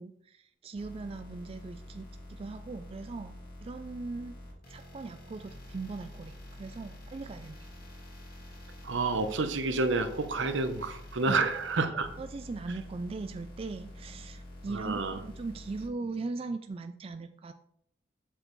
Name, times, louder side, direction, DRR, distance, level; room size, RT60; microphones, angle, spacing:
voice 1, 0.0-3.4 3.6-4.3 4.7-7.6 11.3-11.4 12.2-17.5, right 3 dB, 30° right, 8 dB, 0.3 m, -39 dB
sound 1, 0.8-15.9, left 1 dB, 55° left, 2.2 m, -47 dB
voice 2, 8.8-12.1 14.7-15.2, right 3 dB, 75° right, 9 dB, 0.8 m, -29 dB
7.6 x 6.3 x 3.1 m, 0.72 s
head